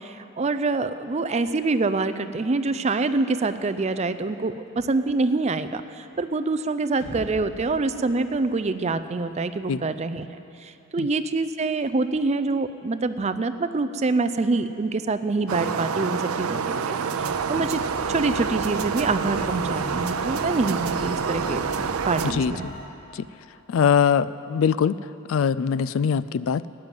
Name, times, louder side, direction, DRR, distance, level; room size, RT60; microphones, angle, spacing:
voice 1, 0.0-10.2 10.6-17.8 18.1-22.7, right 3 dB, 30° right, 11 dB, 0.4 m, -26 dB
sound 1, 7.0-10.9, equal, 85° left, 3.1 m, -46 dB
sound 2, 15.5-22.3, right 6 dB, 85° right, 0.5 m, -27 dB
sound 3, 17.2-22.9, left 1 dB, 30° left, 1.2 m, -38 dB
voice 2, 23.7-25.0 25.3-26.7, left 7 dB, 70° left, 17 dB, 0.3 m, -22 dB
13.0 x 9.2 x 8.9 m, 2.8 s
head